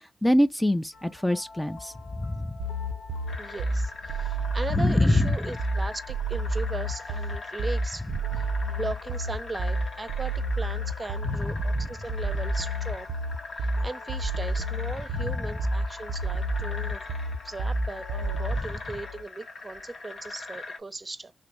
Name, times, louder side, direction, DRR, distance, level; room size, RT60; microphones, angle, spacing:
voice 1, 0.2-1.9 2.2-2.5 4.8-5.3 11.3-11.4, left 1 dB, 10° left, 0.4 m, -23 dB
sound 1, 0.9-19.2, left 5 dB, 85° left, 0.7 m, -46 dB
sound 2, 2.6-18.6, right 1 dB, 85° right, 0.4 m, -30 dB
sound 3, 3.3-20.8, left 3 dB, 70° left, 1.1 m, -42 dB
voice 2, 3.4-8.1 8.3-13.1 13.6-17.0 17.4-21.3, right 3 dB, 30° right, 0.6 m, -38 dB
3.4 x 2.5 x 3.0 m
cardioid pair, 65°, 0 cm